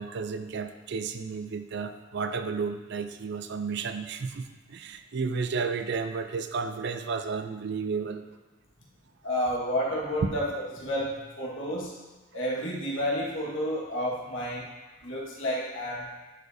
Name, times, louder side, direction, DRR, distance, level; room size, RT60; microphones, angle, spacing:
voice 1, 0.0-8.3 10.2-10.3, right 5 dB, 60° right, 8 dB, 0.4 m, -32 dB
voice 2, 9.2-12.0 12.3-14.7 15.0-16.1, equal, 85° left, -4 dB, 1.6 m, -30 dB
10.5 x 4.9 x 2.7 m, 1.2 s
head